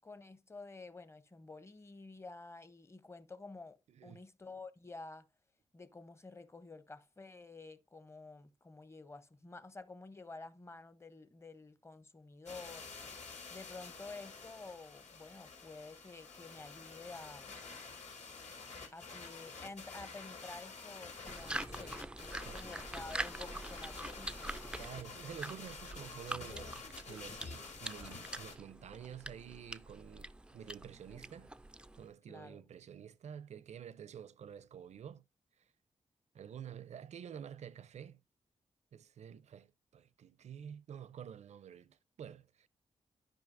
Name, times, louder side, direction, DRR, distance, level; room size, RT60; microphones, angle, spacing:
voice 1, 0.0-5.3 5.7-12.9 13.5-17.5 18.9-24.5 32.3-32.6, left 3 dB, 20° left, 0.8 m, -51 dB
voice 2, 3.9-4.2 22.4-22.6 24.8-26.7 27.1-31.5 31.9-35.2 36.3-38.2 38.9-39.7 39.9-42.7, right 8 dB, 70° right, 0.6 m, -49 dB
sound 1, 12.5-28.6, left 4 dB, 85° left, 3.2 m, -49 dB
sound 2, 21.3-32.1, right 2 dB, 10° right, 0.3 m, -45 dB
12.5 x 5.2 x 2.6 m
wide cardioid pair, 120°, 12 cm